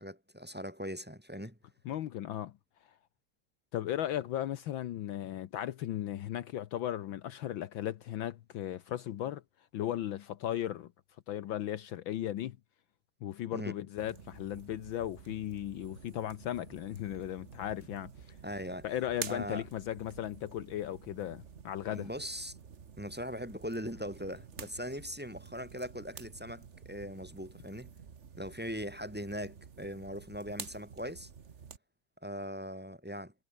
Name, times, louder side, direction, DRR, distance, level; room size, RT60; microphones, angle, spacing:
voice 1, 0.0-1.6 13.5-13.7 18.4-18.9 19.3-19.6 21.9-22.6 23.0-27.9 28.4-31.3 32.2-33.3, equal, 5° right, 4.3 m, -40 dB
voice 2, 1.8-2.6 3.7-9.4 9.7-10.9 11.3-12.6 13.2-18.3 18.8-22.1, left 12 dB, 80° left, 1.0 m, -36 dB
sound 1, 14.0-31.8, right 6 dB, 85° right, 0.6 m, -50 dB
omnidirectional pair, 3.3 m